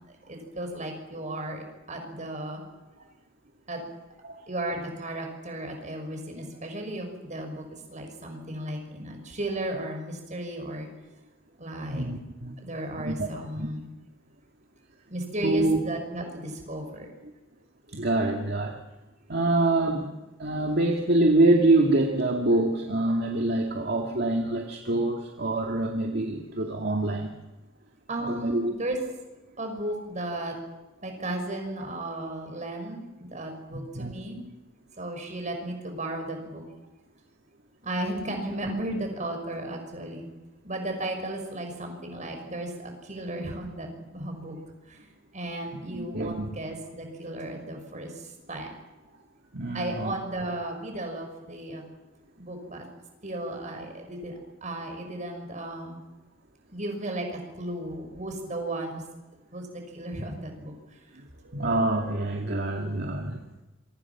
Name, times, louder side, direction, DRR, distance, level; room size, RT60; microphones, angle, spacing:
voice 1, 0.3-2.6 3.7-3.8 4.5-7.6 7.9-10.9 11.6-12.0 12.6-13.9 15.1-17.1 28.1-29.0 29.6-30.5 31.0-34.4 35.0-36.6 37.8-40.3 40.6-44.6 44.9-45.0 45.3-48.1 48.5-48.7 49.7-51.8 52.4-52.8 53.2-56.0 56.7-59.0 59.5-60.7, right 1 dB, 35° right, 4 dB, 6.1 m, -34 dB
voice 2, 11.9-12.6 12.9-13.3 13.6-13.7 15.4-15.8 17.9-18.8 19.3-20.1 20.4-27.3 28.2-28.7 33.7-34.1 45.9-46.5 49.5-50.1 61.4-63.4, right 2 dB, 55° right, 2 dB, 2.2 m, -25 dB
27.5 x 24.5 x 6.0 m, 1.1 s
head